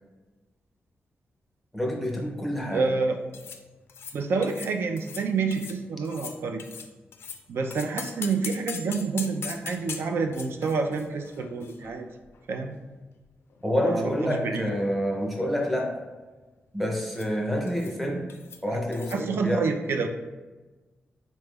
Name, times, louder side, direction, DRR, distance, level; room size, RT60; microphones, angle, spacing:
voice 1, 1.7-2.8 13.6-16.0 16.7-18.3 18.6-19.7, equal, ahead, -1 dB, 0.6 m, -28 dB
voice 2, 2.7-3.2 4.1-6.6 7.5-12.1 12.5-12.8 13.8-14.7 18.7-18.8 19.1-20.1, right 4 dB, 70° right, 5 dB, 0.4 m, -28 dB
sound 1, 3.3-3.6 3.9-4.2 4.4-4.7 5.0-5.2 5.5-5.8 6.0-7.4 7.7-12.4 12.7-12.8 13.5-14.4 14.7-15.0 15.2-15.7 17.1-17.3 17.7-18.0 18.3-18.6 18.9-19.2, left 6 dB, 75° left, 0.3 m, -41 dB
4.1 x 3.5 x 2.2 m, 1.2 s
wide cardioid pair, 155°, 4 cm